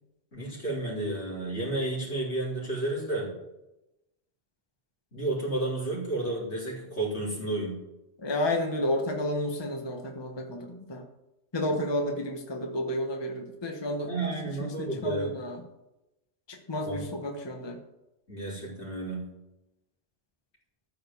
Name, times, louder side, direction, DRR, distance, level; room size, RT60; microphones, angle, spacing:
voice 1, 0.3-3.3 5.1-7.8 14.1-15.3 16.8-17.0 18.3-19.3, right 2 dB, 75° left, -5 dB, 4.2 m, -31 dB
voice 2, 8.2-11.0 11.5-14.1 14.6-15.6 16.5-17.8, left 1 dB, 25° left, 3 dB, 1.1 m, -31 dB
13.5 x 5.2 x 7.1 m, 0.94 s
omnidirectional pair, 1.1 m